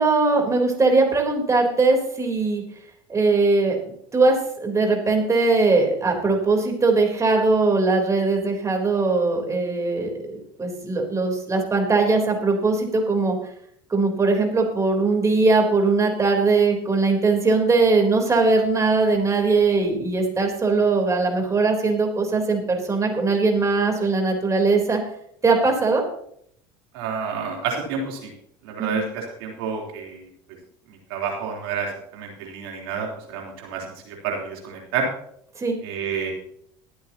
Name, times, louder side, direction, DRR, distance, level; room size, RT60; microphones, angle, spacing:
voice 1, 0.0-2.6 3.1-3.8 4.1-13.4 13.9-25.0 25.4-26.0 28.8-29.0 35.6-35.8, right 3 dB, 25° right, 2 dB, 3.7 m, -20 dB
voice 2, 26.9-28.3 28.6-30.2 30.9-35.1 35.8-36.3, right 5 dB, 80° right, 0 dB, 3.5 m, -29 dB
22.0 x 8.7 x 2.9 m, 0.68 s
supercardioid pair, 90°, 12 cm